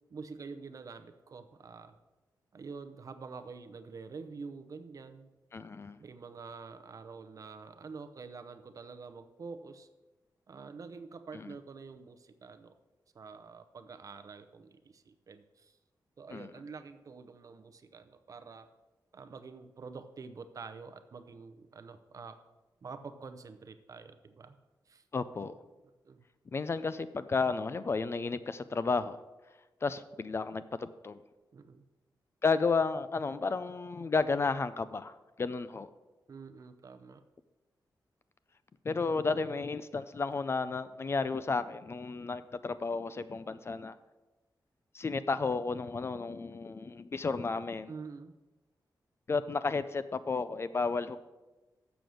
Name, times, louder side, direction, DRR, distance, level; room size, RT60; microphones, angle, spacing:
voice 1, 0.1-1.9 2.5-5.3 6.0-9.9 10.5-12.7 13.1-15.7 16.2-18.7 19.1-22.4 22.8-24.5 24.9-25.0 26.0-26.3 31.5-31.8 36.3-37.2 47.9-48.3, right 4 dB, 45° right, 9 dB, 0.6 m, -47 dB
voice 2, 5.5-6.0 11.3-11.5 16.3-16.5 25.1-25.5 26.5-29.2 29.8-31.2 32.4-35.9 38.8-44.0 44.9-47.9 49.3-51.2, left 4 dB, 35° left, 13 dB, 0.3 m, -32 dB
7.6 x 7.0 x 6.3 m, 1.1 s
wide cardioid pair, 160°, 8 cm